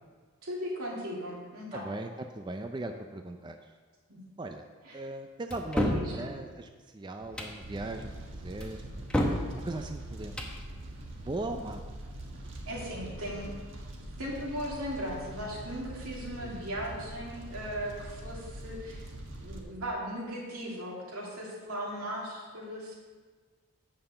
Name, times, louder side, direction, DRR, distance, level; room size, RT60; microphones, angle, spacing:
voice 1, 0.4-1.9 4.1-4.2 4.8-5.0 5.9-6.3 12.7-13.5 14.2-19.0 19.4-23.0, equal, 85° right, -4 dB, 2.8 m, -37 dB
voice 2, 1.7-3.6 4.4-4.6 4.9-8.1 8.4-9.1 9.5-10.4 10.7-10.8 11.2-11.8 16.4-16.7, right 2 dB, 20° right, 5 dB, 0.4 m, -39 dB
sound 1, 5.5-6.1 7.2-7.6 8.6-9.5 10.2-10.6, equal, 5° left, 0.8 m, -29 dB
Fire, 7.6-19.6, right 1 dB, 55° right, 1.5 m, -43 dB
9.0 x 5.6 x 6.9 m, 1.5 s
head